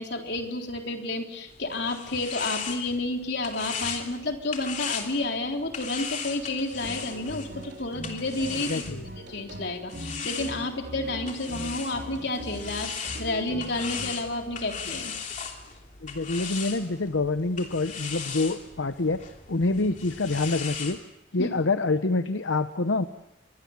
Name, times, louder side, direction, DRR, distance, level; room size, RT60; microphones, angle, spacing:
voice 1, 0.0-8.8 9.3-15.1 21.4-21.5, left 2 dB, 60° left, 3 dB, 3.6 m, -30 dB
sound 1, 1.5-9.3 9.9-21.0, left 6 dB, 40° left, 3.0 m, -38 dB
sound 2, 6.7-14.1, equal, 60° right, 4.2 m, -40 dB
voice 2, 8.7-9.0 16.0-19.2 19.5-21.0 21.3-23.1, left 3 dB, 80° left, 10 dB, 0.9 m, -26 dB
27.5 x 23.5 x 7.2 m, 0.88 s
head